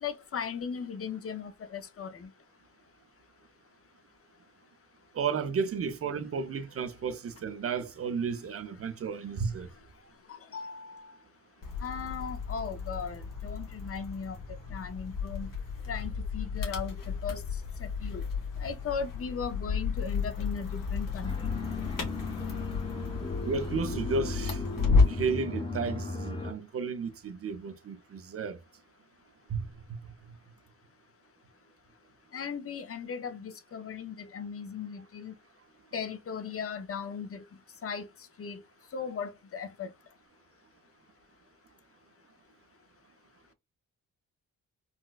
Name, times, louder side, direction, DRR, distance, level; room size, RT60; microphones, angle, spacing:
voice 1, 0.0-2.3 10.3-11.1 11.8-14.4 14.7-15.5 15.9-17.4 17.8-18.2 18.6-21.4 32.3-35.3 35.9-37.4 37.8-38.1 38.4-38.6 38.9-39.9, left 6 dB, 40° left, 0.6 m, -37 dB
voice 2, 5.1-9.7 23.5-24.6 25.0-28.6 29.5-30.0, right 5 dB, 40° right, 0.6 m, -33 dB
sound 1, 11.6-25.3, left 4 dB, 70° left, 1.3 m, -32 dB
sound 2, 21.2-26.5, left 3 dB, 15° left, 0.9 m, -36 dB
4.0 x 2.2 x 2.4 m
cardioid pair, 95°, 34 cm